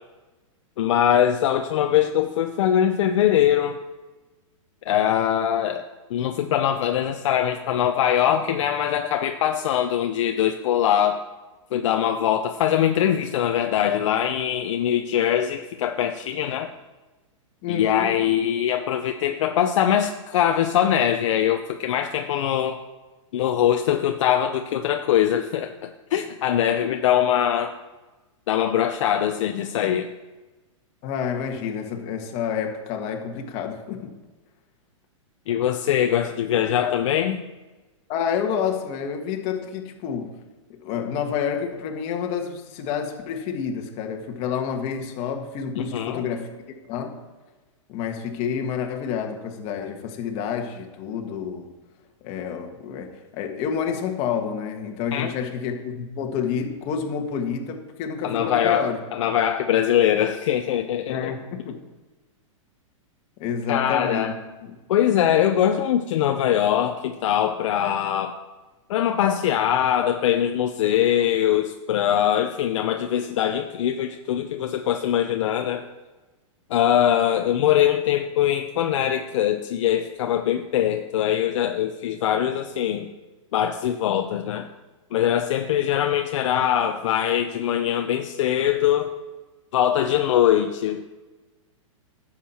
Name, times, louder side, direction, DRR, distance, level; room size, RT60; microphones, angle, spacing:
voice 1, 0.8-3.8 4.9-5.8 6.1-11.2 11.7-16.7 17.7-22.8 23.3-27.7 28.5-30.1 35.5-37.4 45.8-46.2 55.1-55.3 58.2-61.3 63.7-64.3 64.9-68.4 68.9-75.8 76.7-83.1 83.5-84.7 85.1-89.1 89.7-91.0, left 10 dB, 65° left, 5 dB, 0.7 m, -22 dB
voice 2, 17.6-18.1 31.0-34.1 38.1-40.3 40.7-46.5 46.9-47.2 47.9-51.7 52.2-59.0 61.1-61.8 63.4-64.3 64.6-64.8, left 7 dB, 40° left, 3 dB, 1.6 m, -29 dB
11.0 x 7.4 x 4.4 m, 1.2 s
hypercardioid pair, 140°, 17 cm